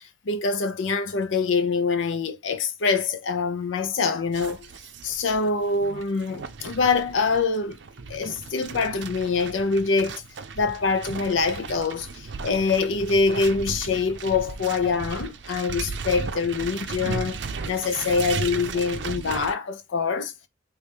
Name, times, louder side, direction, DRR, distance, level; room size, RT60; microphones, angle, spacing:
voice 1, 0.0-4.7 5.0-7.8 8.1-10.2 10.6-20.3, left 4 dB, 85° left, 0.5 m, -25 dB
sound 1, 4.3-19.5, right 5 dB, 70° right, 0.6 m, -35 dB
3.2 x 3.1 x 3.3 m
head